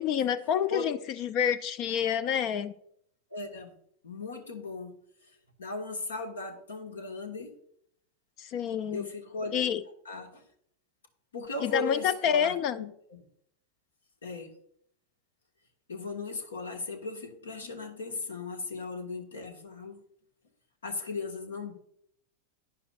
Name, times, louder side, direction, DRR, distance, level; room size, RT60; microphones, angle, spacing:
voice 1, 0.0-2.7 8.4-9.1 9.5-9.8 11.6-12.8, left 8 dB, 40° left, 15 dB, 0.5 m, -28 dB
voice 2, 3.3-3.7 4.0-4.9 5.6-7.5 8.9-9.7 10.0-10.4 11.3-12.9 14.2-14.5 15.9-20.0 20.8-21.7, left 3 dB, 70° left, 5 dB, 1.6 m, -37 dB
11.5 x 9.8 x 2.5 m, 0.67 s
figure-of-eight pair, 90°, 0 cm